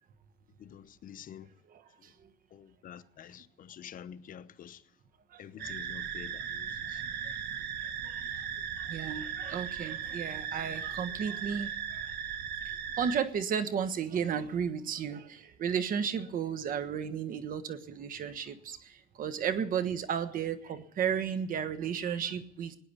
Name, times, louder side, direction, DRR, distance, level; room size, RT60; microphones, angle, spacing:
voice 1, 0.6-1.5 2.5-4.8 5.4-7.0, left 9 dB, 55° left, 0.9 m, -48 dB
voice 2, 1.7-2.1 5.3-5.8 6.9-7.0 8.0-8.5 8.8-12.1 12.6-22.8, right 7 dB, 55° right, 1.4 m, -34 dB
sound 1, 5.6-13.2, right 8 dB, 75° right, 1.3 m, -37 dB
17.5 x 9.8 x 8.4 m
cardioid pair, 110°, 17 cm